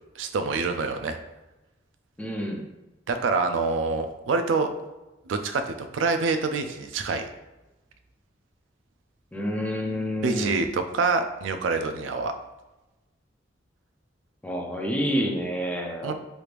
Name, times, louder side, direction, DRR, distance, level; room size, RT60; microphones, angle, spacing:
voice 1, 0.2-1.2 3.1-4.7 5.3-7.3 10.2-12.3 16.0-16.1, right 4 dB, 85° right, 8 dB, 0.4 m, -26 dB
voice 2, 2.2-2.7 9.3-10.6 14.4-16.1, equal, 10° left, 0 dB, 0.4 m, -28 dB
3.3 x 3.1 x 2.5 m, 1.0 s
head